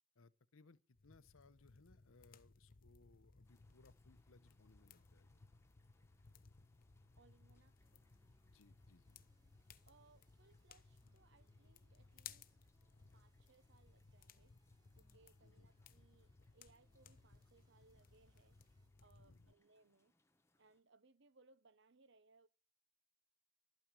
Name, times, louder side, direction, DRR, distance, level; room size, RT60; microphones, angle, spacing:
voice 1, 0.1-5.3 8.4-9.2 15.4-15.7 19.2-19.6, left 3 dB, 85° left, 0.9 m, -67 dB
sound 1, 1.0-19.5, left 6 dB, 45° left, 0.8 m, -63 dB
sound 2, 3.4-20.8, left 2 dB, 15° left, 1.3 m, -81 dB
voice 2, 7.2-8.0 9.8-12.6 13.1-14.6 14.9-18.6 19.0-20.2 20.6-22.5, right 3 dB, 60° right, 0.9 m, -71 dB
sound 3, 7.8-18.9, right 1 dB, 20° right, 2.1 m, -83 dB
12.5 x 9.2 x 9.8 m
head